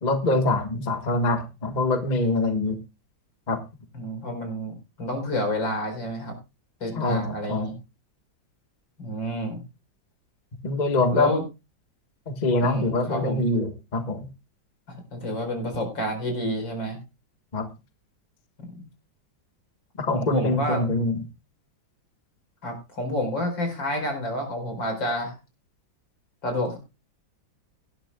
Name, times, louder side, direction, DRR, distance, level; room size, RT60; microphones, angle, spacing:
voice 1, 0.0-2.8 3.5-3.6 6.9-7.7 10.6-11.3 12.3-14.3 17.5-17.7 20.0-21.2, left 2 dB, 25° left, 6 dB, 1.3 m, -24 dB
voice 2, 3.9-6.3 6.8-7.8 9.0-9.6 11.1-11.4 12.6-13.4 14.9-17.0 18.6-18.7 20.1-20.8 22.6-25.3 26.4-26.8, left 1 dB, 70° left, 5 dB, 5.4 m, -29 dB
18.5 x 11.0 x 2.3 m, 0.26 s
omnidirectional pair, 2.1 m